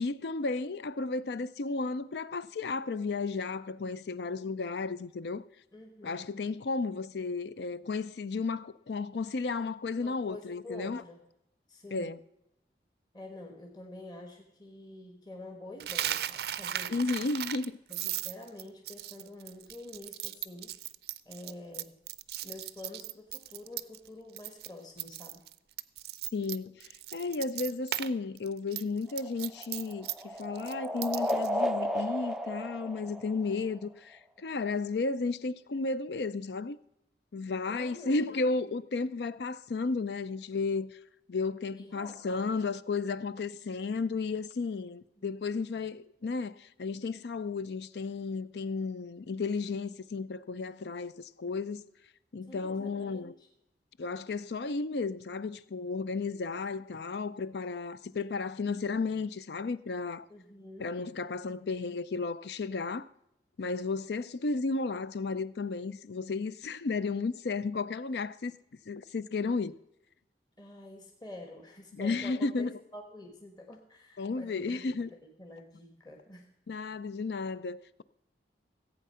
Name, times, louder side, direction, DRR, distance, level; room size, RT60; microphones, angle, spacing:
voice 1, 0.0-5.4 6.0-11.0 11.9-12.2 16.9-17.8 26.3-36.8 37.3-41.0 41.3-51.8 52.3-53.3 54.0-60.3 60.8-63.1 63.6-68.5 68.9-69.8 71.9-72.7 74.2-75.1 76.7-78.0, left 4 dB, 70° left, 0.5 m, -33 dB
voice 2, 5.7-6.3 10.0-11.2 11.7-12.2 13.1-17.0 17.9-20.7 21.2-21.9 22.4-25.5 37.7-38.7 41.7-42.6 45.2-45.3 52.5-53.5 60.3-60.9 70.6-76.5, left 2 dB, 25° left, 1.3 m, -48 dB
Coin (dropping), 15.8-24.1 24.4-24.7 25.0-28.1 28.4-31.5, right 12 dB, 65° right, 0.4 m, -37 dB
sound 1, 29.1-33.8, equal, 5° right, 0.4 m, -33 dB
15.5 x 8.4 x 5.6 m
head